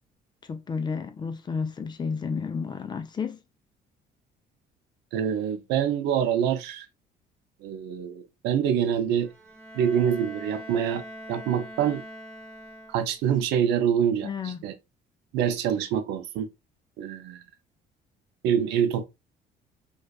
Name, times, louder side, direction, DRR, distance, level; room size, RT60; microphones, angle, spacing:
voice 1, 0.5-3.4 14.2-14.6, left 5 dB, 25° left, 0.4 m, -31 dB
voice 2, 5.1-6.9 7.6-9.3 9.7-11.0 11.3-12.0 12.9-14.7 15.3-16.5 17.0-17.4 18.4-19.0, right 8 dB, 85° right, 0.4 m, -25 dB
Bowed string instrument, 9.2-13.3, equal, 5° left, 0.9 m, -43 dB
2.3 x 2.3 x 2.3 m
cardioid pair, 110°, 17 cm